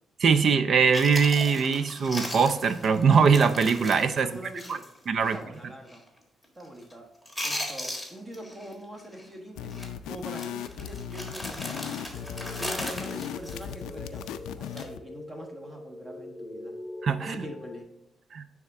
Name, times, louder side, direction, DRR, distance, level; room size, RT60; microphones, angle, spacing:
voice 1, 0.2-4.3 4.7-4.8 5.1-5.4 17.0-17.4 18.3-18.4, right 5 dB, 55° right, 12 dB, 0.5 m, -22 dB
Chewing mastication, 0.6-0.7 0.9-5.0 5.2-5.4 5.9-6.2 6.4-6.9 7.2-8.7 9.0-9.3 9.7-9.9 10.3-14.2 14.6-14.9, left 1 dB, ahead, 1.6 m, -37 dB
voice 2, 4.2-4.9 5.2-6.0 6.5-7.1 7.4-12.1 12.6-14.2 14.6-16.8 17.2-17.9, right 1 dB, 25° right, 2 dB, 1.2 m, -43 dB
sound 1, 9.6-15.0, left 9 dB, 90° left, 0.3 m, -37 dB
sound 2, 12.1-17.8, left 1 dB, 20° left, 0.7 m, -43 dB
9.2 x 3.5 x 3.5 m, 0.85 s
cardioid pair, 90°, 0 cm